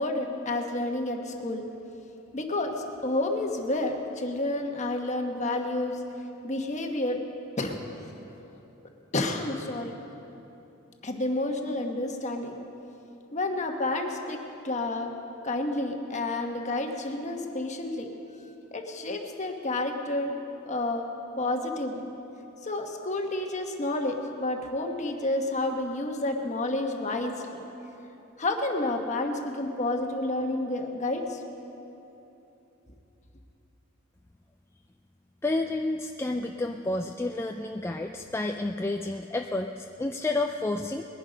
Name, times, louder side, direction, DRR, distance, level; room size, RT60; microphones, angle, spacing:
voice 1, 0.0-1.6 2.3-2.7 3.0-6.0 6.4-7.2 7.6-7.8 9.1-9.9 11.0-12.6 13.3-15.1 15.4-18.1 18.7-20.3 20.6-21.0 21.4-22.0 22.6-27.6 28.4-31.4, left 2 dB, 35° left, 3 dB, 1.2 m, -30 dB
voice 2, 35.4-41.1, left 2 dB, 10° left, 4 dB, 0.3 m, -30 dB
21.0 x 11.0 x 5.1 m, 3.0 s
head